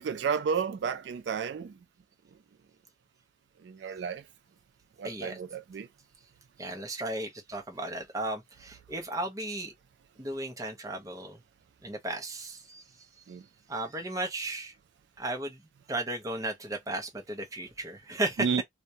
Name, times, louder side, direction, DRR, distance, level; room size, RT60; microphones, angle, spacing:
voice 1, 0.0-1.7 3.6-4.2 5.0-5.9 13.3-13.4 18.4-18.6, right 6 dB, 65° right, 0.3 m, -31 dB
voice 2, 5.0-5.4 6.6-9.7 10.2-11.4 11.8-12.8 13.7-14.7 15.2-15.6 15.9-18.5, right 2 dB, 20° right, 0.5 m, -35 dB
2.1 x 2.1 x 2.7 m
head